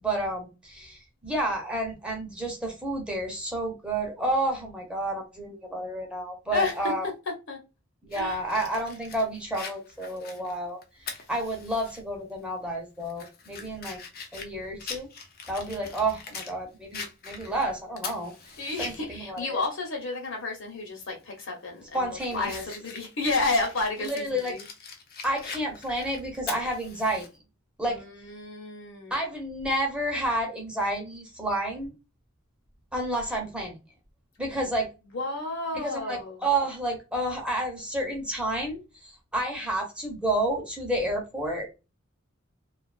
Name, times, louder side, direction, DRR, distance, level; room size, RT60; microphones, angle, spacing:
voice 1, 0.0-7.1 8.0-14.0 14.3-15.1 15.5-18.3 18.8-19.6 21.9-22.6 24.0-24.5 25.2-27.2 27.8-28.0 29.1-31.9 32.9-33.8 34.4-34.9 35.7-41.7, right 1 dB, 5° right, 0.8 m, -30 dB
voice 2, 6.5-6.9 7.5-7.6 8.1-8.4 18.6-24.6 27.9-29.2 35.1-36.4, left 3 dB, 60° left, 1.0 m, -31 dB
Fire, 8.1-12.0 12.4-12.5 13.0-16.5 16.9-19.0 19.4-19.5 21.0-21.2 21.7-27.3, left 5 dB, 45° left, 0.6 m, -42 dB
2.5 x 2.4 x 2.3 m
head